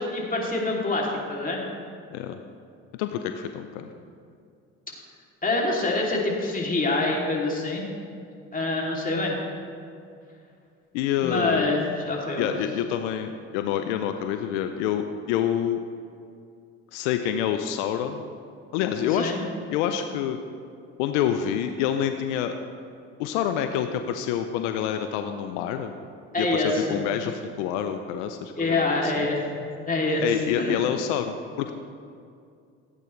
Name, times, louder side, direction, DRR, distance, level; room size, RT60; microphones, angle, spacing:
voice 1, 0.0-1.6 5.4-7.8 8.5-9.4 11.2-12.5 19.1-19.4 26.3-27.1 28.5-29.5 29.9-30.3 30.5-30.8, left 2 dB, 25° left, -2 dB, 2.9 m, -26 dB
voice 2, 3.0-3.9 10.9-11.7 12.4-15.8 16.9-18.2 18.7-19.3 19.7-20.4 21.0-22.5 23.2-25.9 26.4-29.3 30.2-31.7, left 9 dB, 80° left, 7 dB, 0.6 m, -27 dB
16.0 x 9.0 x 3.2 m, 2.4 s
hypercardioid pair, 60°, 35 cm